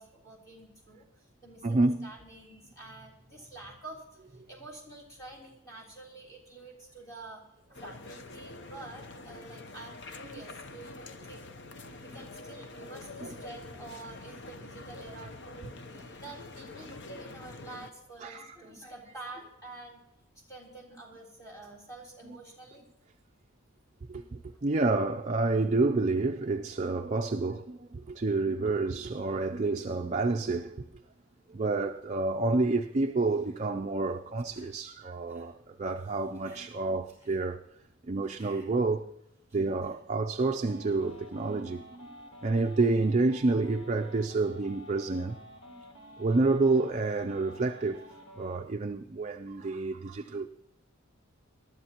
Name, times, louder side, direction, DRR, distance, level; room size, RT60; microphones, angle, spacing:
voice 1, 0.0-7.4 7.7-11.6 12.0-20.0 20.3-22.8, right 2 dB, 15° left, 3.3 m, -48 dB
voice 2, 1.6-2.1 13.2-13.3 18.2-18.5 24.1-30.8 31.5-37.6 38.1-39.1 39.5-42.1 42.4-45.4 46.2-48.0 48.4-50.5, right 3 dB, 35° right, 0.4 m, -29 dB
sound 1, 7.7-17.9, left 3 dB, 55° left, 0.8 m, -46 dB
sound 2, 34.1-34.7 35.1-35.4 35.8-36.7 37.0-37.4 38.2-38.7 39.2-40.0 40.8-41.5, equal, 10° right, 5.3 m, -59 dB
sound 3, 40.6-48.6, equal, 75° left, 3.4 m, -50 dB
22.0 x 12.5 x 2.9 m
head